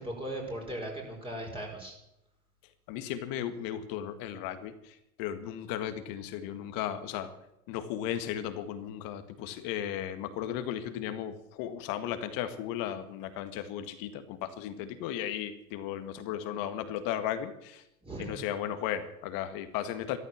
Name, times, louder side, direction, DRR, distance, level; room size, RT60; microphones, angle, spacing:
voice 1, 0.0-1.9 18.0-18.4, right 1 dB, 10° right, 0 dB, 5.0 m, -38 dB
voice 2, 2.9-7.3 7.7-17.8 18.2-20.2, left 10 dB, 50° left, 10 dB, 1.9 m, -35 dB
14.0 x 13.5 x 7.5 m, 0.84 s
hypercardioid pair, 105°, 45 cm